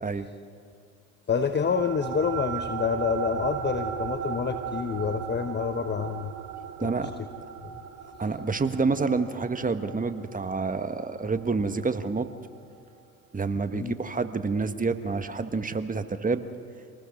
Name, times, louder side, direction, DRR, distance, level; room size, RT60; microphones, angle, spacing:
voice 1, 1.3-6.3 6.8-6.9 7.6-7.7 13.7-14.0, left 6 dB, 30° left, 8 dB, 1.2 m, -27 dB
sound 1, 1.6-12.4, right 9 dB, 60° right, 4.1 m, -37 dB
voice 2, 6.8-7.1 8.2-12.3 13.3-16.4, right 4 dB, 20° right, 9 dB, 1.5 m, -28 dB
27.0 x 20.0 x 5.4 m, 2.4 s
hypercardioid pair, 65°, 37 cm